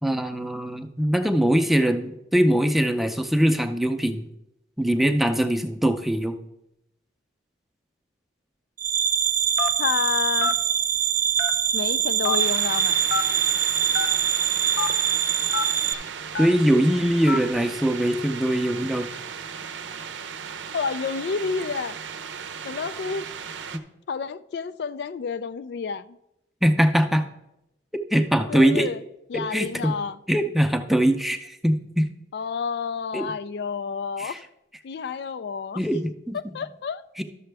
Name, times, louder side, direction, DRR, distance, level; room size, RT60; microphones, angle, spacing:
voice 1, 0.0-4.3 4.8-6.3 16.4-19.1 26.6-27.2 28.1-28.9 29.3-29.9 30.3-32.0 33.1-33.3 34.2-34.4 35.8-36.4 37.2-37.3, equal, ahead, 0.5 m, -22 dB
sound 1, 8.8-15.9, right 8 dB, 50° right, 0.5 m, -23 dB
Telephone, 9.6-9.9 10.4-10.6 11.4-11.8 12.2-12.4 13.1-13.3 13.9-14.1 14.7-14.9 15.5-15.6 16.3-16.6 17.3-17.5, left 3 dB, 80° left, 0.7 m, -26 dB
voice 2, 9.8-10.6 11.7-13.0 20.7-22.0 22.6-23.2 24.1-26.2 28.5-29.0 29.3-30.2 32.3-34.4 34.8-35.8 36.3-37.0, left 5 dB, 60° left, 0.3 m, -29 dB
sound 2, 12.4-23.8, right 6 dB, 90° right, 0.7 m, -37 dB
12.0 x 6.8 x 3.4 m
head